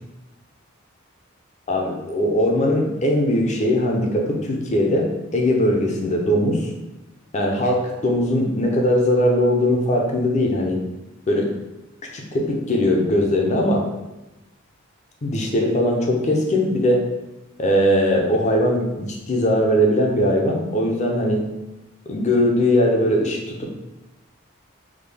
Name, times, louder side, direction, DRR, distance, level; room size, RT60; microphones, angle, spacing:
voice 1, 1.7-6.7 7.3-10.8 11.3-11.5 12.1-13.9 15.2-17.1 17.6-21.4 22.1-23.8, left 1 dB, 35° left, 0 dB, 0.5 m, -20 dB
3.6 x 2.2 x 3.3 m, 1.0 s
head